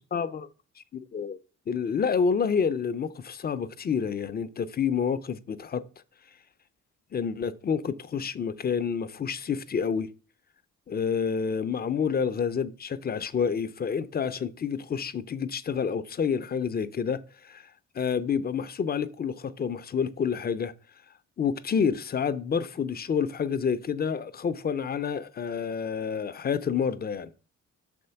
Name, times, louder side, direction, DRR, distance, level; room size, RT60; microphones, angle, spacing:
voice 1, 0.1-0.5 0.8-1.4 1.7-5.8 7.1-10.1 10.9-17.6 18.0-20.7 21.4-27.3, left 6 dB, 30° left, 0.5 m, -28 dB
6.2 x 4.3 x 5.6 m
cardioid pair, 90°, 30 cm